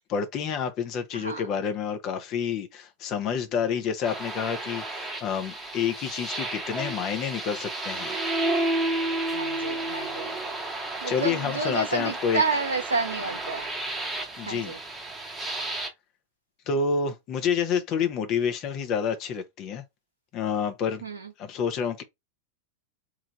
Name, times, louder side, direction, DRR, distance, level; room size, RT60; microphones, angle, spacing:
voice 1, 0.1-8.2 11.1-12.4 14.4-14.8 15.5-15.8 16.7-19.8 20.3-21.0 21.4-22.0, left 6 dB, 35° left, 0.7 m, -29 dB
sound 1, 4.0-15.9, right 2 dB, 10° right, 0.9 m, -32 dB
voice 2, 9.3-10.3 11.0-13.6 14.5-14.8 21.0-21.1, right 4 dB, 75° right, 0.5 m, -29 dB
3.2 x 2.4 x 3.8 m
figure-of-eight pair, 90°, 0 cm